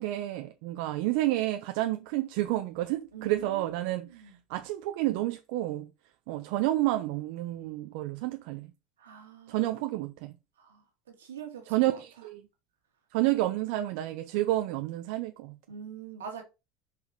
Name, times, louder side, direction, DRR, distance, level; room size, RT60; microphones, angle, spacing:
voice 1, 0.0-5.9 6.3-8.7 9.5-10.3 11.7-12.4 13.1-15.5, right 16 dB, 70° right, 0.7 m, -30 dB
voice 2, 3.1-4.4 9.0-9.8 10.6-12.0 15.7-16.4, right 7 dB, 85° right, 2.0 m, -44 dB
5.1 x 4.8 x 5.0 m
hypercardioid pair, 85°, 0 cm